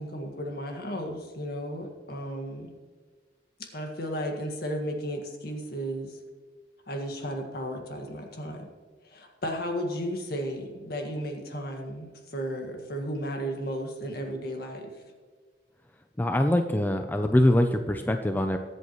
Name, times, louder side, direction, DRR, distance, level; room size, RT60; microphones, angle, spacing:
voice 1, 0.0-2.7 3.6-6.2 6.9-8.7 9.0-14.9, equal, 60° left, 3 dB, 1.8 m, -34 dB
voice 2, 16.2-18.6, left 1 dB, 10° left, 6 dB, 0.5 m, -23 dB
22.0 x 8.1 x 3.1 m, 1.5 s
head